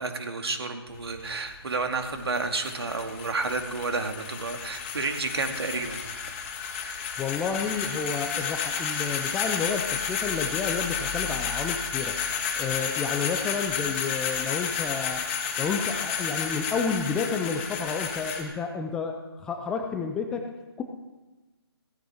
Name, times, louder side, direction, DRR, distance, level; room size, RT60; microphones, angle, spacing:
voice 1, 0.0-6.0, right 3 dB, 70° right, 5 dB, 2.3 m, -30 dB
sound 1, 0.9-18.4, left 6 dB, 25° left, 2.3 m, -31 dB
voice 2, 7.2-12.2 12.5-15.2 15.6-20.5 20.8-20.9, left 5 dB, 5° left, 4 dB, 0.4 m, -30 dB
16.5 x 15.5 x 4.4 m, 1.2 s
hypercardioid pair, 155°, 14 cm